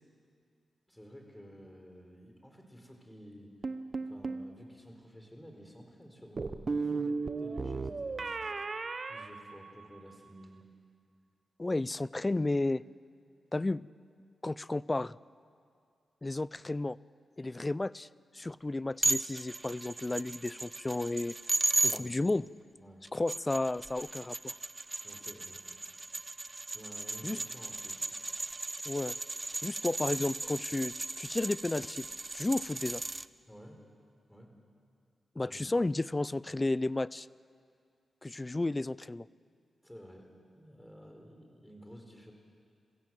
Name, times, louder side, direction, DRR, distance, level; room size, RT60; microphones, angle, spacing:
voice 1, 0.9-3.5 4.0-8.3 9.1-10.6 21.8-22.2 22.8-23.0 25.0-25.6 26.7-28.1 33.5-33.8 34.3-34.6 35.4-35.7 39.8-42.3, equal, 10° left, 3 dB, 4.8 m, -52 dB
sound 1, 3.6-4.5 6.4-10.1, right 4 dB, 50° right, 1.0 m, -35 dB
voice 2, 11.6-12.8 13.5-13.9 14.4-15.2 16.2-17.0 17.4-18.1 18.3-21.4 21.9-22.5 23.1-24.5 27.2-27.4 28.9-29.1 29.6-32.1 32.3-33.0 35.4-37.3 38.2-39.3, left 2 dB, 30° left, 21 dB, 0.5 m, -32 dB
sound 2, 19.0-22.0 23.1-33.3, right 2 dB, 30° right, 0.6 m, -36 dB
24.5 x 15.5 x 8.0 m, 2.3 s
supercardioid pair, 45°, 0 cm